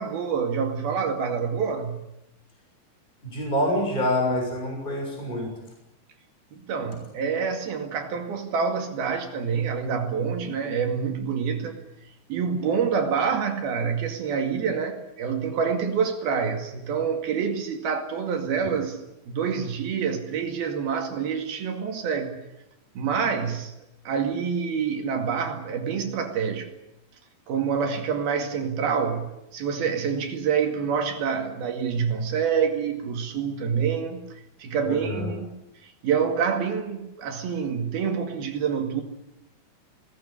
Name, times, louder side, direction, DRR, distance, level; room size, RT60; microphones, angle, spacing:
voice 1, 0.0-2.0 6.5-11.8 12.3-19.0 19.3-22.4 23.0-23.7 24.1-26.7 27.5-34.3 34.6-39.0, right 6 dB, 75° right, 4 dB, 4.1 m, -27 dB
voice 2, 3.2-5.5 10.4-10.5 34.8-35.3, left 1 dB, 10° left, 1 dB, 6.6 m, -26 dB
21.5 x 19.0 x 9.9 m, 0.87 s
omnidirectional pair, 4.4 m